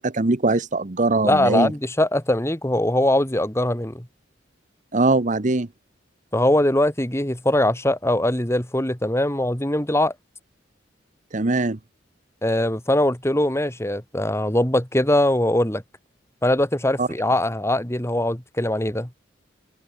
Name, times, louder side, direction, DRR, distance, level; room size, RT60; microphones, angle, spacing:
voice 1, 0.0-1.7 4.9-5.7 11.3-11.8 17.0-17.1, right 2 dB, 40° right, 1.0 m, -21 dB
voice 2, 1.2-4.1 6.3-10.1 12.4-15.8 16.4-19.1, left 1 dB, 15° left, 2.6 m, -21 dB
head